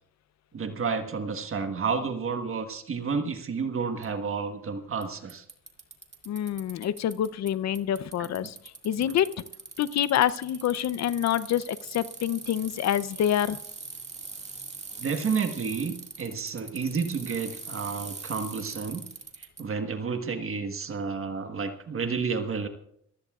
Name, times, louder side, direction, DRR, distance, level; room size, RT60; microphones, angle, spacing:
voice 1, 0.5-5.4 8.2-8.3 9.0-9.1 15.0-19.0 19.4-22.7, right 5 dB, 45° right, 7 dB, 1.4 m, -31 dB
Bicycle, 4.0-4.1 5.0-5.1 5.3-7.5 7.7-19.6, right 4 dB, 25° right, 2.1 m, -42 dB
voice 2, 6.3-8.6 8.8-9.3 9.8-13.6, left 10 dB, 60° left, 16 dB, 0.6 m, -26 dB
26.5 x 15.0 x 2.4 m, 0.71 s
cardioid pair, 90°, 30 cm